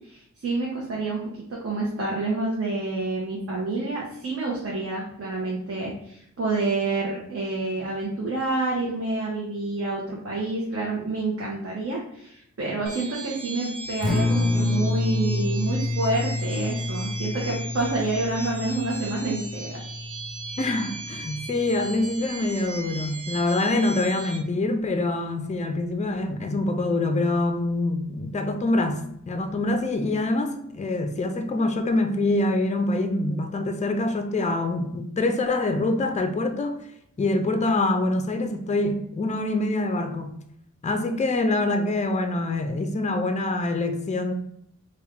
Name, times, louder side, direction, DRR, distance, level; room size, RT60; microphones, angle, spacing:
voice 1, 0.0-19.8, right 2 dB, 50° right, 0.8 m, -28 dB
sound 1, 12.9-24.4, right 3 dB, 85° right, 0.7 m, -38 dB
Acoustic guitar, 13.9-22.1, left 2 dB, 5° left, 1.3 m, -29 dB
voice 2, 20.6-36.8 37.2-40.3 40.8-44.3, left 2 dB, 25° left, 0.4 m, -25 dB
3.3 x 2.3 x 3.5 m
wide cardioid pair, 95°, 30 cm